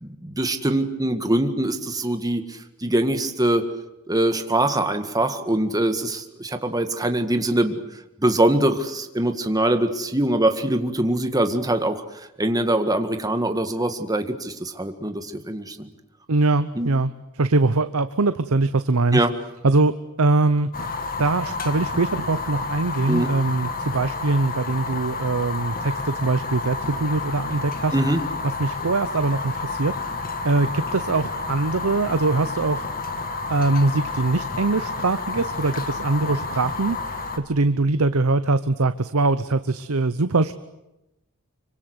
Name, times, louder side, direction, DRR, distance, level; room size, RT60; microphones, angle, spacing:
voice 1, 0.0-3.7 4.1-7.8 8.2-15.9 16.7-16.9 19.1-19.3 23.1-23.3 27.9-28.2, right 1 dB, 15° right, 7 dB, 1.8 m, -23 dB
voice 2, 16.3-17.1 17.4-19.2 19.6-27.9 28.6-30.1 30.4-32.9 33.5-40.5, right 3 dB, 75° right, 11 dB, 0.8 m, -22 dB
Fire, 20.7-37.4, left 3 dB, 45° left, 2.3 m, -30 dB
25.5 x 24.5 x 8.0 m, 0.92 s
head